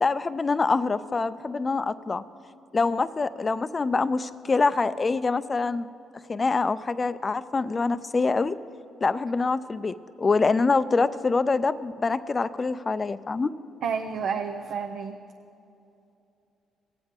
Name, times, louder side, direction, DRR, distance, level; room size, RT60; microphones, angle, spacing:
voice 1, 0.0-2.2 2.7-5.9 6.3-8.6 9.0-13.5, left 4 dB, 30° left, 14 dB, 0.4 m, -25 dB
voice 2, 13.8-15.2, right 6 dB, 75° right, 4 dB, 0.5 m, -30 dB
19.0 x 7.9 x 3.7 m, 2.7 s
cardioid pair, 90°, 0 cm